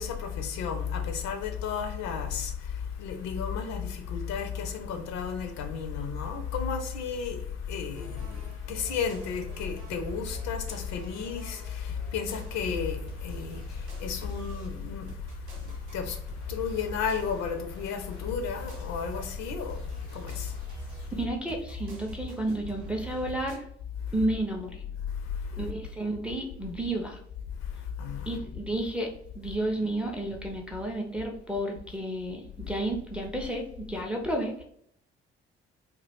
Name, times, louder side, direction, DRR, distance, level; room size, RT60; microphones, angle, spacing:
voice 1, 0.0-21.1 25.1-25.7 27.6-28.4, left 6 dB, 55° left, 0.5 m, -33 dB
sound 1, 7.9-23.6, right 6 dB, 80° right, 0.7 m, -45 dB
voice 2, 21.2-23.6 24.1-24.8 25.6-27.2 28.3-34.6, right 1 dB, 5° right, 0.4 m, -32 dB
2.2 x 2.0 x 3.2 m
figure-of-eight pair, 45°, 33 cm